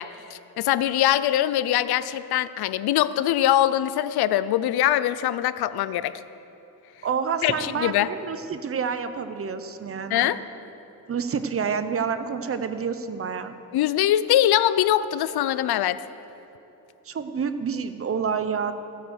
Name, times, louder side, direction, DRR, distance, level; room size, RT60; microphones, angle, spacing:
voice 1, 0.0-6.2 7.4-8.1 10.1-10.4 13.7-16.0, left 12 dB, 80° left, 15 dB, 0.5 m, -22 dB
voice 2, 7.0-10.3 11.1-13.5 17.1-18.7, right 6 dB, 35° right, 10 dB, 0.7 m, -28 dB
15.0 x 9.0 x 6.5 m, 3.0 s
cardioid pair, 125°, 37 cm